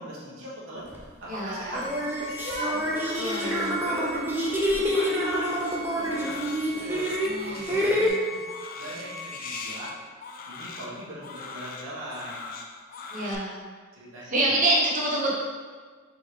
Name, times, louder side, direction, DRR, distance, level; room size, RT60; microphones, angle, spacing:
voice 1, 0.0-1.9 2.2-4.1 4.7-8.0 8.7-9.9 10.5-12.5 13.9-14.6, equal, 75° right, -8 dB, 1.3 m, -39 dB
sound 1, 0.9-1.0 1.7-8.1, equal, 10° right, 0.5 m, -27 dB
voice 2, 1.3-1.8 3.2-3.7 7.2-8.4 13.1-13.6 14.3-15.3, right 1 dB, 40° right, -5 dB, 1.0 m, -27 dB
Bowed string instrument, 1.7-10.0, left 2 dB, 85° left, 0.8 m, -41 dB
Crying sobbing, 2.5-13.3, left 4 dB, 45° left, 0.4 m, -42 dB
4.1 x 3.8 x 3.2 m, 1.5 s
head